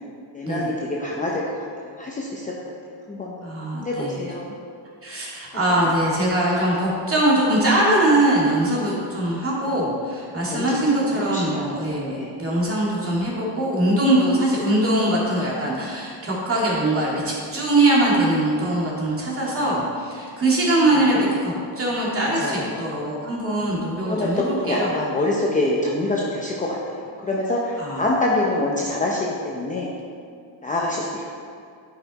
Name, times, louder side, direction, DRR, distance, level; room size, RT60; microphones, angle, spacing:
voice 1, 0.3-1.4 1.8-2.5 3.1-3.3 3.7-4.5 10.3-10.7 11.0-11.8 12.1-12.4 20.9-21.3 22.4-22.8 24.0-26.8 27.2-29.9 30.6-31.2, left 2 dB, 15° left, -4 dB, 0.8 m, -26 dB
voice 2, 3.4-4.2 5.0-24.9 27.8-28.0, right 1 dB, 30° right, -4 dB, 2.2 m, -22 dB
9.5 x 6.0 x 4.1 m, 2.3 s
cardioid pair, 135°, 48 cm